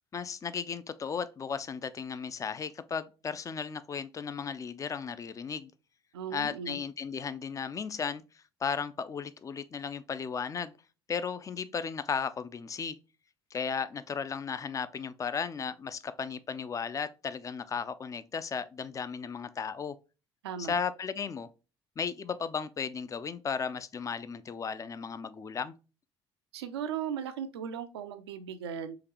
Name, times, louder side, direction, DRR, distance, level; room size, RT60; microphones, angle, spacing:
voice 1, 0.1-5.7 6.3-8.2 8.6-10.7 11.1-13.0 13.5-20.0 20.6-21.5 22.0-25.7, left 6 dB, 25° left, 0.4 m, -35 dB
voice 2, 6.1-6.8 20.4-20.7 26.5-29.0, right 8 dB, 75° right, 0.4 m, -37 dB
3.8 x 2.8 x 2.9 m
figure-of-eight pair, 55°, 14 cm